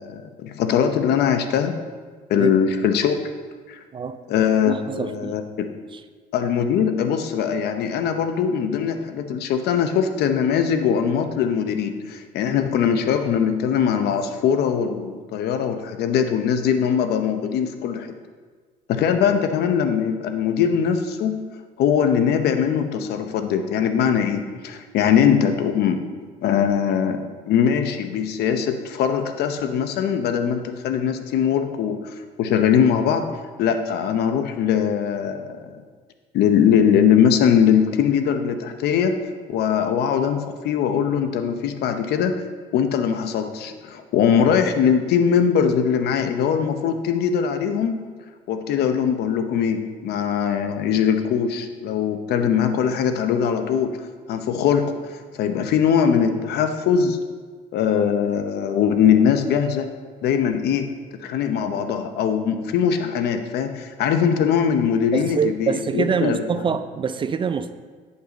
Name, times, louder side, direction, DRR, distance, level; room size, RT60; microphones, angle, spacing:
voice 1, 0.0-1.8 2.3-3.2 3.7-3.8 4.3-5.7 6.3-18.1 18.9-21.4 21.8-26.0 26.4-27.2 27.4-33.3 33.6-35.6 36.3-39.2 39.5-42.3 42.7-48.0 48.5-54.0 54.3-57.2 57.7-59.9 60.2-60.9 61.2-66.4, left 7 dB, 75° left, 8 dB, 0.7 m, -21 dB
voice 2, 4.6-5.4 5.9-6.0 65.1-67.7, right 6 dB, 30° right, 11 dB, 0.4 m, -25 dB
9.8 x 5.4 x 3.9 m, 1.5 s
cardioid pair, 110°, 17 cm